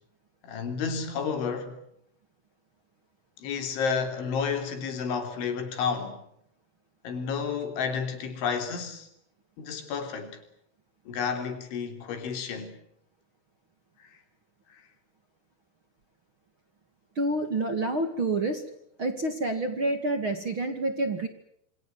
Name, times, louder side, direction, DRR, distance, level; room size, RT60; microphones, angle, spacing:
voice 1, 0.4-1.8 3.4-6.2 7.0-9.1 9.6-10.4 11.1-12.7, left 6 dB, 85° left, 5.8 m, -31 dB
voice 2, 17.2-18.6 19.0-21.3, right 2 dB, 40° right, 2.2 m, -28 dB
28.0 x 25.0 x 7.7 m
omnidirectional pair, 5.3 m